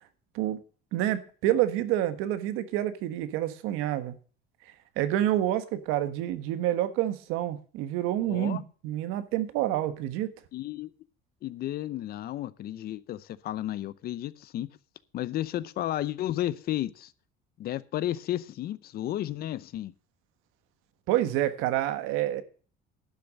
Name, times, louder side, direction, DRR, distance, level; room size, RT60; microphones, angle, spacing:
voice 1, 0.9-4.1 5.0-10.3 21.1-22.4, right 13 dB, 85° right, 1.4 m, -28 dB
voice 2, 8.2-8.6 10.5-10.9 11.4-14.7 15.1-17.1 17.6-19.9, left 13 dB, 50° left, 0.7 m, -33 dB
11.5 x 7.0 x 6.5 m
cardioid pair, 145°, 21 cm